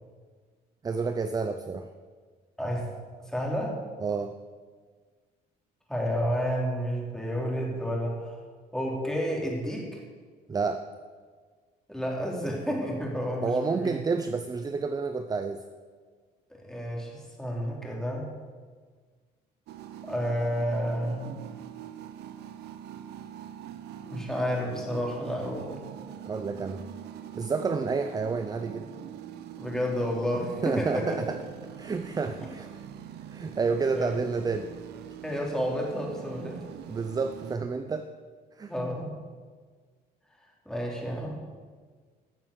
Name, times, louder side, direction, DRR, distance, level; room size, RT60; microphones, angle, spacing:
voice 1, 0.8-1.9 4.0-4.4 10.5-10.8 13.4-15.7 26.3-26.8 27.4-28.9 30.6-31.4 31.8-32.7 33.3-34.7 36.9-38.1 38.6-38.7, right 4 dB, 25° right, 9 dB, 0.6 m, -29 dB
voice 2, 2.6-2.9 3.3-3.8 5.9-8.3 8.7-10.0 11.9-14.0 16.6-18.3 20.0-21.3 24.0-25.8 29.6-31.1 33.9-34.1 35.2-36.6 38.7-39.2 40.7-41.4, equal, 5° left, -2 dB, 3.3 m, -30 dB
sound 1, 19.7-37.6, right 10 dB, 75° right, 0.8 m, -43 dB
13.5 x 7.1 x 6.6 m, 1.5 s
cardioid pair, 110°, 17 cm